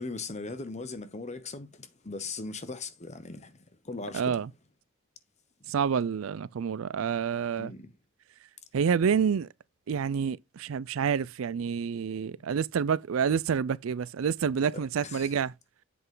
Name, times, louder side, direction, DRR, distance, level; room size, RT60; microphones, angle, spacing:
voice 1, 0.0-3.6 3.8-4.4 7.6-7.9 14.7-15.3, left 3 dB, 35° left, 0.9 m, -39 dB
voice 2, 4.1-4.5 5.7-7.7 8.7-9.5 9.9-15.5, right 7 dB, 75° right, 0.4 m, -28 dB
7.8 x 5.6 x 3.8 m
head